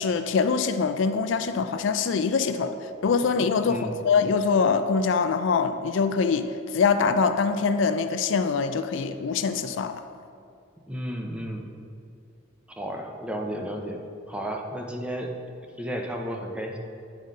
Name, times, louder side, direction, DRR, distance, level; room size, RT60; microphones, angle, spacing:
voice 1, 0.0-2.7 3.0-10.0, left 5 dB, 75° left, 10 dB, 0.4 m, -24 dB
voice 2, 10.9-11.7 12.8-15.3 15.8-16.8, equal, 5° right, 2 dB, 0.6 m, -33 dB
9.6 x 3.9 x 5.2 m, 2.4 s
head